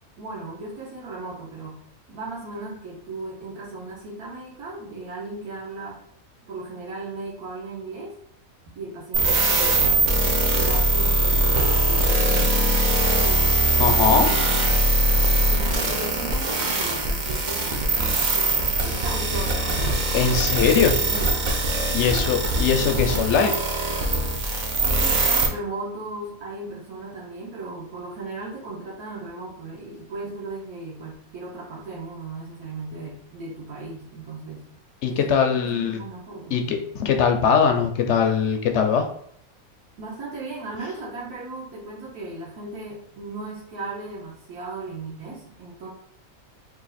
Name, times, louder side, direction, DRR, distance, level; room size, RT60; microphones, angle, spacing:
voice 1, 0.2-6.0 6.5-8.1 8.7-13.6 14.2-14.8 15.3-21.5 21.9-22.2 24.8-34.7 35.1-35.2 35.5-36.9 40.0-45.9, right 3 dB, 85° right, -5 dB, 1.5 m, -37 dB
sound 1, 9.1-25.5, right 2 dB, 60° right, 0.4 m, -22 dB
voice 2, 13.8-14.3 20.1-21.0 21.9-23.5 35.0-36.0 36.5-39.0, left 6 dB, 65° left, 4 dB, 0.7 m, -21 dB
3.3 x 2.6 x 4.0 m, 0.65 s
omnidirectional pair, 1.5 m